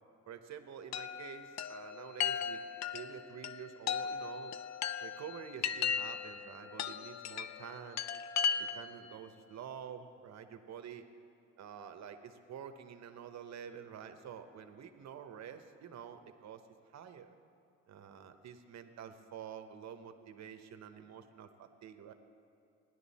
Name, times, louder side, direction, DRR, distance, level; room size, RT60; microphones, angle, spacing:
voice 1, 0.3-2.6 2.9-4.5 5.0-8.0 8.6-11.0 11.6-16.6 16.9-17.3 17.9-22.1, right 8 dB, 60° right, 8 dB, 1.0 m, -48 dB
Chime, 0.9-9.0, left 7 dB, 60° left, 0.5 m, -37 dB
16.5 x 11.0 x 4.2 m, 2.6 s
cardioid pair, 90°, 30 cm